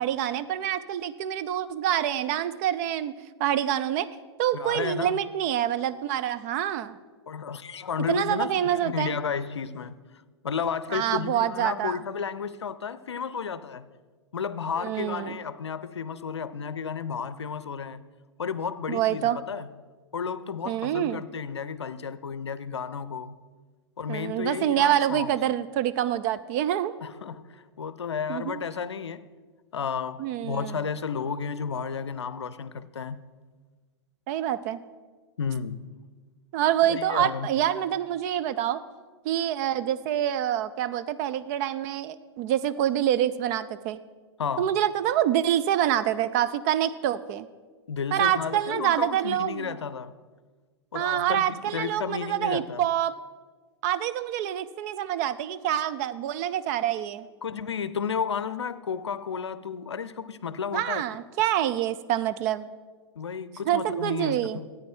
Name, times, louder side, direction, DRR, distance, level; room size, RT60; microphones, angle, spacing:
voice 1, 0.0-3.1 3.4-4.1 4.4-7.0 8.1-9.2 10.9-12.0 14.8-15.4 18.9-19.4 20.7-21.2 24.1-26.9 28.3-28.6 30.2-30.9 34.3-34.8 36.5-38.8 39.2-44.0 44.6-47.5 48.1-49.8 50.9-53.1 53.8-57.3 60.7-62.7 63.7-64.6, right 11 dB, 35° right, 0.5 m, -26 dB
voice 2, 4.5-5.2 7.3-10.0 10.4-13.9 14.3-18.0 18.4-19.8 20.1-23.4 24.0-25.3 27.0-29.3 29.7-33.2 35.4-35.9 36.9-37.6 44.4-44.8 47.9-50.1 50.9-52.9 57.4-61.0 63.2-64.7, left 6 dB, 75° left, 0.6 m, -32 dB
13.5 x 9.2 x 4.5 m
figure-of-eight pair, 105°, 15 cm